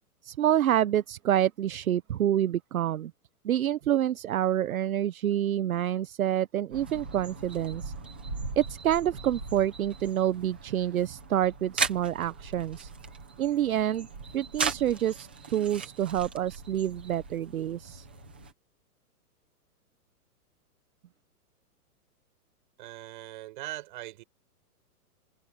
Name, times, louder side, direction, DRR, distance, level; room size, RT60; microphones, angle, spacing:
voice 1, 0.2-3.1 3.4-7.9 8.6-12.9 13.4-14.1 14.3-18.1, right 11 dB, 65° right, 0.9 m, -27 dB
sound 1, 6.7-18.5, right 5 dB, 5° right, 0.6 m, -38 dB
voice 2, 22.8-24.2, right 17 dB, 30° right, 6.1 m, -40 dB
hypercardioid pair, 180°, 46 cm